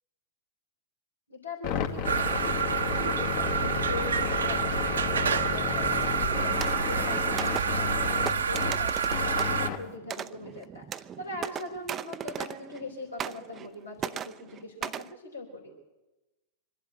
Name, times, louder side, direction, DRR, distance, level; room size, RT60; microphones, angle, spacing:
voice 1, 1.3-15.7, left 2 dB, 80° left, -4 dB, 3.5 m, -41 dB
sound 1, 1.6-9.8, left 8 dB, 50° left, 2.4 m, -32 dB
sound 2, 2.0-9.7, right 6 dB, 75° right, 1.0 m, -28 dB
sound 3, 6.0-12.9 13.2-13.7 14.0-15.1, right 9 dB, 25° right, 0.6 m, -38 dB
25.0 x 11.5 x 8.8 m, 1.1 s
figure-of-eight pair, 95°, 0 cm